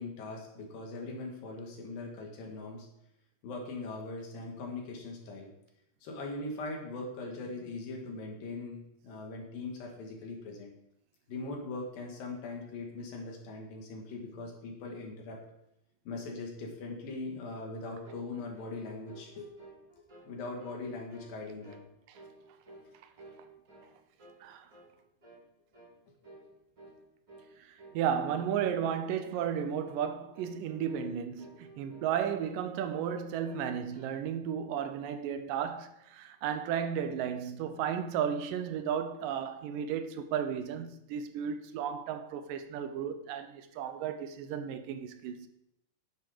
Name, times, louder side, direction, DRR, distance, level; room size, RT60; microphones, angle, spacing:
voice 1, 0.0-2.9 3.4-5.5 6.0-10.7 11.3-15.4 16.0-19.5 20.2-21.8, left 3 dB, 85° left, 3.5 m, -40 dB
sound 1, 18.0-18.3 18.5-18.8 19.1-20.3 20.6-20.8 21.1-21.4 21.6-21.9 22.1-22.9 23.2-23.9 24.2-24.4 24.7-24.9 25.2-25.4 25.7-25.9 26.2-26.5 26.8-27.0 27.3-27.5 27.8-28.0 28.3-28.5 28.8-29.1 29.3-29.5 29.8-30.0 30.3-31.1 31.4-32.1 32.4-33.1 33.4-34.2, right 2 dB, 30° right, 4.5 m, -54 dB
voice 2, 27.6-45.5, right 8 dB, 80° right, 2.3 m, -34 dB
10.5 x 6.6 x 5.1 m
omnidirectional pair, 4.0 m